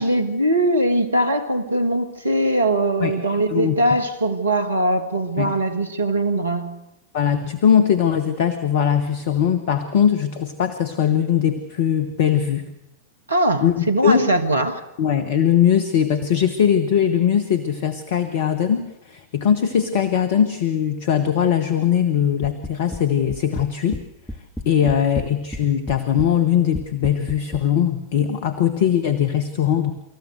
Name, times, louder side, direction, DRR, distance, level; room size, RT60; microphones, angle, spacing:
voice 1, 0.0-6.8 13.3-14.8, right 1 dB, 75° right, 9 dB, 1.6 m, -21 dB
voice 2, 3.0-3.8 5.4-5.5 7.1-12.7 13.6-13.7 14.0-14.3 15.0-24.0 24.6-29.9, left 9 dB, 55° left, 11 dB, 1.2 m, -20 dB
sound 1, 22.4-23.0 23.3-24.0 24.3-25.6 25.9-26.3 26.7-27.7, left 1 dB, 5° left, 1.5 m, -31 dB
25.0 x 14.5 x 7.9 m, 0.90 s
figure-of-eight pair, 90°, 0 cm